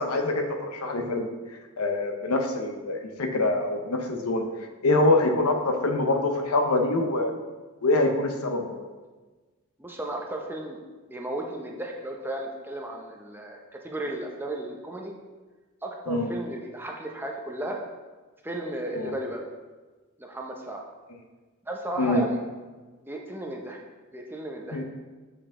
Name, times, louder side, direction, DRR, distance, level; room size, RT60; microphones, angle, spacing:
voice 1, 0.0-1.3 1.8-4.5 4.8-7.3 7.8-8.8 16.1-16.3 19.0-19.1 22.0-22.3 24.7-24.8, left 2 dB, 85° left, 4 dB, 0.8 m, -25 dB
voice 2, 9.8-10.8 11.1-15.1 15.8-17.8 18.4-19.5 20.2-20.8 21.7-22.4 23.0-23.8 24.1-24.8, right 1 dB, 10° right, 1 dB, 0.6 m, -34 dB
7.2 x 4.9 x 3.7 m, 1.3 s
head